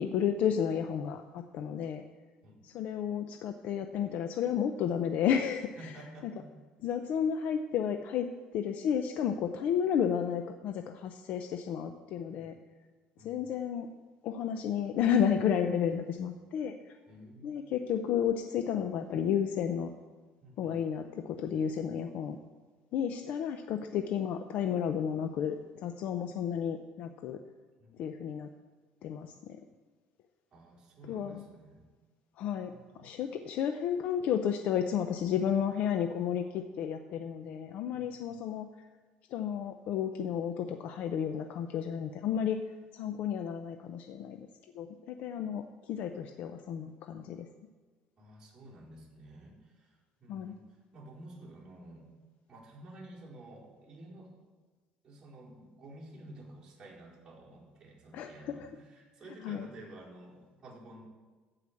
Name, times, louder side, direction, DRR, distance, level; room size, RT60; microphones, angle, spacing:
voice 1, 0.0-2.0 2.6-5.7 6.8-12.5 13.2-13.9 14.2-17.0 17.4-19.9 20.6-22.4 22.9-25.6 25.8-27.4 28.0-28.5 29.0-29.6 31.1-31.4 32.4-32.7 33.0-38.7 39.3-42.6 42.9-44.5 44.7-47.5 50.3-50.6 58.1-58.7 59.4-59.7, left 8 dB, 60° left, 7 dB, 0.6 m, -32 dB
voice 2, 5.8-6.5 12.3-12.6 13.2-13.5 17.1-17.5 20.4-20.8 27.8-27.9 30.5-31.8 32.6-33.1 37.9-38.4 48.2-52.1 52.5-54.4 55.0-61.0, right 1 dB, 25° right, -6 dB, 4.4 m, -51 dB
14.5 x 5.0 x 8.5 m, 1.4 s
cardioid pair, 135°, 3 cm